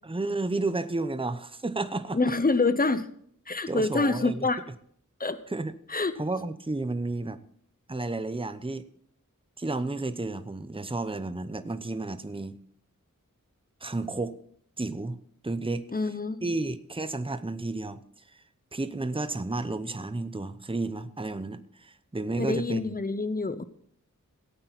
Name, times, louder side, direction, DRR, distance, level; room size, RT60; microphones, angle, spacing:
voice 1, 0.0-2.2 3.7-4.5 5.5-5.7 6.2-7.4 7.9-8.9 9.6-12.6 13.8-14.4 14.8-15.2 15.4-15.8 16.4-18.0 18.3-18.4 18.7-22.9, right 2 dB, 15° right, 11 dB, 0.8 m, -32 dB
voice 2, 2.1-3.1 3.5-4.6 5.2-5.4 5.9-6.1 15.9-16.5 22.4-23.6, left 3 dB, 25° left, 12 dB, 0.9 m, -26 dB
17.5 x 8.7 x 4.1 m, 0.64 s
wide cardioid pair, 50°, 32 cm